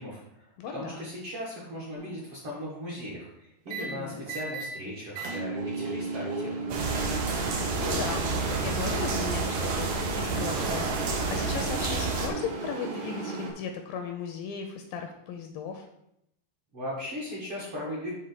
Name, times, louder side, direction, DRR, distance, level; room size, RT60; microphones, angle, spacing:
voice 1, 0.0-6.8 16.7-18.1, equal, 50° right, -5 dB, 1.8 m, -38 dB
voice 2, 0.6-1.0 3.8-4.2 7.8-15.9, left 6 dB, 80° left, 5 dB, 2.2 m, -36 dB
sound 1, 1.9-2.3 3.7-3.8 4.3-4.7 5.1-13.5, right 4 dB, 85° right, 3.3 m, -35 dB
sound 2, 6.7-12.3, right 3 dB, 65° right, 2.3 m, -30 dB
7.9 x 3.6 x 6.6 m, 0.78 s
omnidirectional pair, 4.5 m